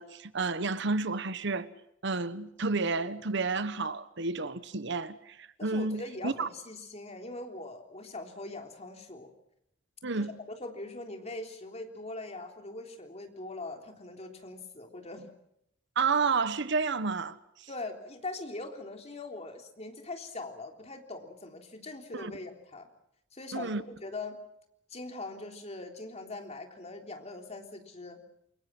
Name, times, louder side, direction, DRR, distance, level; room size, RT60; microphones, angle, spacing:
voice 1, 0.0-1.7 2.0-6.5 10.0-10.4 16.0-17.7 22.1-22.3 23.5-23.8, right 4 dB, 65° right, 1.1 m, -31 dB
voice 2, 5.6-9.3 10.2-10.3 10.6-15.3 17.7-22.9 23.3-24.4 24.9-28.2, left 2 dB, 35° left, 3.6 m, -41 dB
28.5 x 23.5 x 6.0 m
head